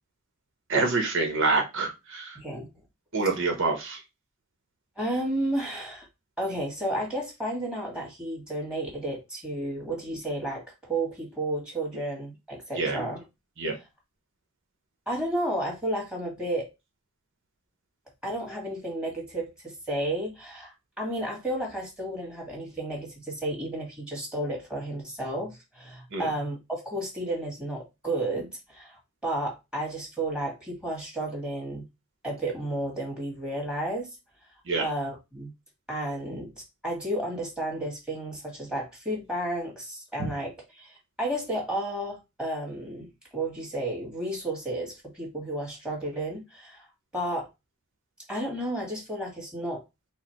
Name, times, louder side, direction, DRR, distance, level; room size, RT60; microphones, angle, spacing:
voice 1, 0.7-2.4 3.1-4.0 12.8-13.1 13.6-13.7 26.1-26.3 34.7-34.9, right 3 dB, 55° right, 1.1 m, -26 dB
voice 2, 2.4-2.7 3.5-3.6 5.0-6.1 6.4-13.2 15.1-16.7 18.2-31.8 32.2-34.1 34.8-35.5 35.9-36.5 36.8-46.9 47.1-47.5 48.3-49.8, right 1 dB, 5° right, 1.8 m, -32 dB
4.7 x 2.2 x 4.4 m
head